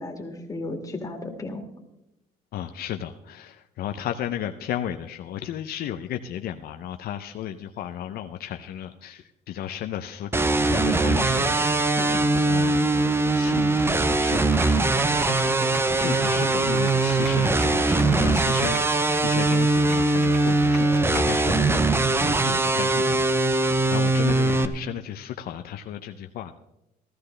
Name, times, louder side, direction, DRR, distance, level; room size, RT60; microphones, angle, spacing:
voice 1, 0.0-1.7 11.3-11.5 12.0-12.2, left 2 dB, 20° left, 3 dB, 2.1 m, -34 dB
voice 2, 2.5-12.0 12.3-15.0 15.3-15.4 15.9-18.8 19.2-26.6, left 11 dB, 65° left, 6 dB, 0.6 m, -34 dB
sound 1, 10.3-24.7, right 2 dB, 15° right, 0.7 m, -21 dB
sound 2, 14.3-21.6, right 1 dB, 45° right, 3.5 m, -39 dB
15.0 x 13.5 x 3.3 m, 0.90 s
cardioid pair, 110°, 17 cm